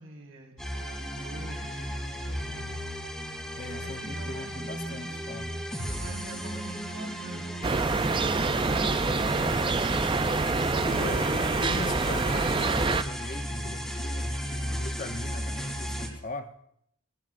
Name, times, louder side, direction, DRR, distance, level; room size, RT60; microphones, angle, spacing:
voice 1, 0.0-2.7 3.7-5.6 5.9-9.0, right 1 dB, 90° right, -1 dB, 4.5 m, -46 dB
sound 1, 0.6-16.1, equal, ahead, 2.7 m, -35 dB
voice 2, 3.6-5.5 10.8-16.5, left 2 dB, 40° left, 8 dB, 0.9 m, -40 dB
sound 2, 7.6-13.0, right 3 dB, 25° right, 0.5 m, -26 dB
22.5 x 20.0 x 2.6 m, 0.74 s
head